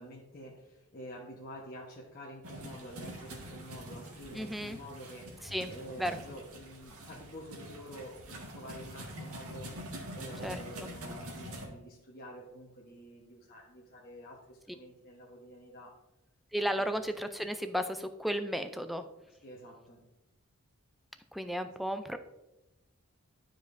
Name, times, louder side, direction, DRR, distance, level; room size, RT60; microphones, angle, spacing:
voice 1, 0.0-9.7 10.1-16.0 16.8-16.9 19.4-20.1, equal, 40° left, -4 dB, 1.1 m, -48 dB
sound 1, 2.4-11.7, equal, 85° right, 1.6 m, -45 dB
voice 2, 4.3-4.8 5.4-5.7 6.0-6.2 10.4-10.9 16.5-19.1 21.3-22.2, equal, ahead, 8 dB, 0.3 m, -34 dB
11.5 x 5.1 x 2.6 m, 0.98 s
head